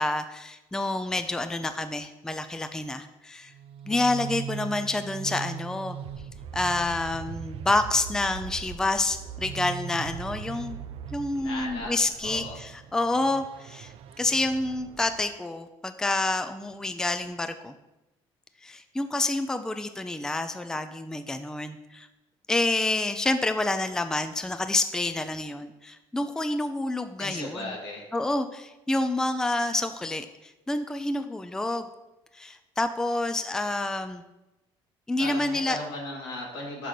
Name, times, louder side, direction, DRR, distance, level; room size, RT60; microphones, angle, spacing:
voice 1, 0.0-3.5 3.9-6.0 6.5-10.8 11.1-17.7 18.6-22.1 22.5-27.7 28.1-31.8 32.3-34.2 35.1-35.8, left 2 dB, 5° left, 9 dB, 0.4 m, -28 dB
sound 1, 3.5-15.3, right 8 dB, 65° right, 0.4 m, -40 dB
voice 2, 11.3-11.9 12.2-12.6 27.2-28.0 35.2-36.9, left 2 dB, 90° left, -2 dB, 2.2 m, -36 dB
5.2 x 4.8 x 5.9 m, 0.98 s
cardioid pair, 110°, 11 cm